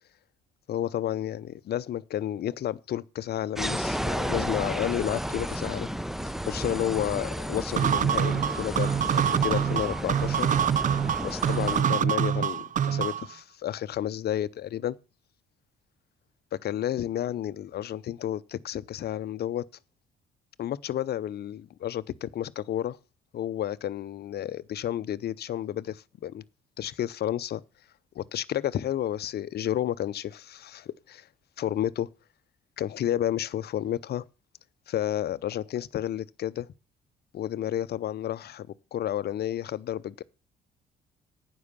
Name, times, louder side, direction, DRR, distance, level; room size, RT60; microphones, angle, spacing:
voice 1, 0.7-5.9 6.4-10.5 11.2-15.0 16.6-19.6 20.6-23.0 23.3-26.4 26.8-27.6 28.1-31.3 31.6-32.1 32.8-34.2 34.9-36.7 37.3-40.2, left 11 dB, 55° left, 0.7 m, -31 dB
sound 1, 3.6-11.8, equal, ahead, 0.7 m, -32 dB
sound 2, 7.8-13.3, right 9 dB, 40° right, 0.5 m, -25 dB
9.5 x 6.3 x 6.9 m
hypercardioid pair, 55°, 20 cm